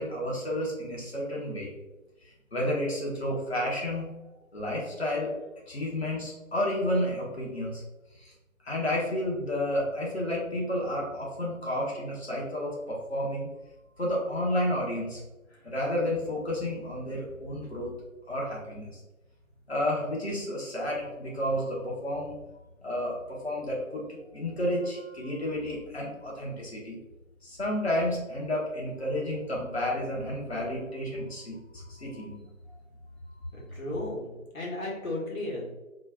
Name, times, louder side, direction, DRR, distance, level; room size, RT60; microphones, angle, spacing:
voice 1, 0.0-1.7 2.2-4.1 4.5-5.3 5.7-7.8 8.2-8.3 8.6-13.5 14.0-15.2 15.6-17.9 18.3-19.0 19.7-22.4 22.8-27.0 27.4-32.4 33.3-33.4, left 1 dB, 50° left, -3 dB, 1.1 m, -31 dB
voice 2, 33.5-35.7, left 1 dB, 75° left, -4 dB, 1.4 m, -34 dB
4.3 x 2.3 x 2.2 m, 1.1 s
figure-of-eight pair, 165°, 41 cm